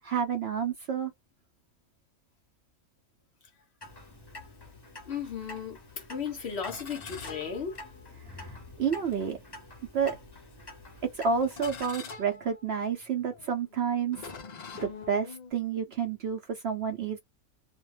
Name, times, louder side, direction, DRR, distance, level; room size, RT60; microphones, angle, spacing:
voice 1, 0.0-1.1 8.3-9.4 9.9-10.2 11.0-14.3 14.7-17.2, right 6 dB, 60° right, 0.7 m, -30 dB
Clock, 3.8-11.9, left 2 dB, 25° left, 0.6 m, -47 dB
voice 2, 5.1-7.8, left 7 dB, 55° left, 0.8 m, -35 dB
sound 1, 6.7-8.3 9.1-9.3 10.1-10.6 11.4-15.5, left 5 dB, 70° left, 0.4 m, -45 dB
2.4 x 2.1 x 3.1 m
omnidirectional pair, 1.5 m